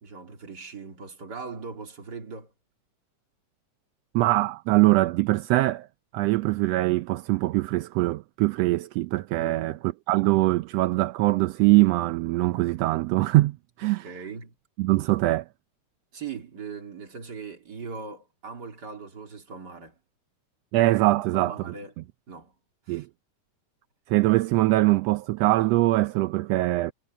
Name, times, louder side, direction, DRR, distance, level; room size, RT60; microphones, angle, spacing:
voice 1, 0.0-2.5 9.4-9.8 13.8-14.5 16.1-19.9 21.3-21.9 22.3-22.5 22.9-23.1, right 5 dB, 35° right, 3.2 m, -40 dB
voice 2, 4.1-5.9 6.1-9.8 10.1-14.1 14.8-15.4 20.7-21.7 22.9-23.1 24.1-26.9, right 18 dB, 80° right, 1.5 m, -22 dB
omnidirectional pair, 3.4 m